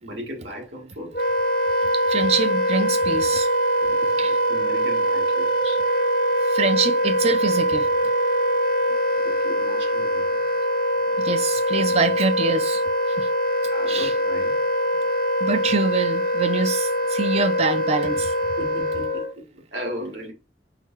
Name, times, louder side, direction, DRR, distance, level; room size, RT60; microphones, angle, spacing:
voice 1, 0.0-1.2 3.8-3.9 4.5-5.8 9.1-10.5 13.7-14.6 18.6-20.3, equal, 85° right, 1.8 m, -36 dB
Wind instrument woodwind instrument, 1.1-19.3, equal, 55° left, 0.8 m, -23 dB
voice 2, 2.1-3.5 4.2-4.4 6.5-7.9 11.2-12.8 13.2-13.3 13.9-14.1 15.4-18.3, right 4 dB, 35° right, 0.4 m, -25 dB
4.8 x 2.2 x 4.5 m
head